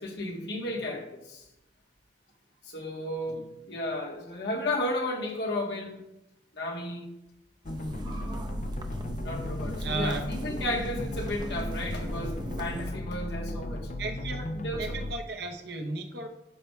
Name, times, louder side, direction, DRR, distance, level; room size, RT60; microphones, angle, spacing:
voice 1, 0.0-1.4 2.6-6.0 6.5-7.1 9.2-13.9 14.6-15.0, left 1 dB, 75° left, 0 dB, 1.2 m, -33 dB
sound 1, 7.6-15.1, left 1 dB, 45° left, 0.4 m, -35 dB
sound 2, 7.7-12.9, right 1 dB, 25° right, 0.6 m, -39 dB
voice 2, 9.8-10.2 14.0-14.5 14.8-16.3, right 3 dB, 65° right, 4 dB, 0.8 m, -34 dB
12.5 x 4.5 x 2.3 m, 0.88 s
head